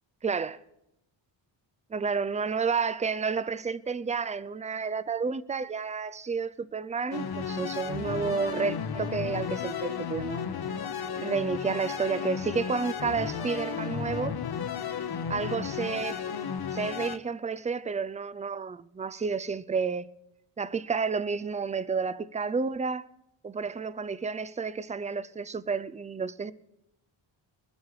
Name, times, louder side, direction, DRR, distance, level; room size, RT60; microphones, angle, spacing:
voice 1, 0.2-0.6 1.9-10.4 11.2-14.4 15.3-16.2 16.7-20.1 20.6-23.1 23.4-26.5, right 5 dB, 15° right, 0.4 m, -31 dB
sound 1, 7.1-17.2, left 7 dB, 50° left, 1.0 m, -34 dB
22.0 x 8.2 x 4.9 m
cardioid pair, 95°, 49 cm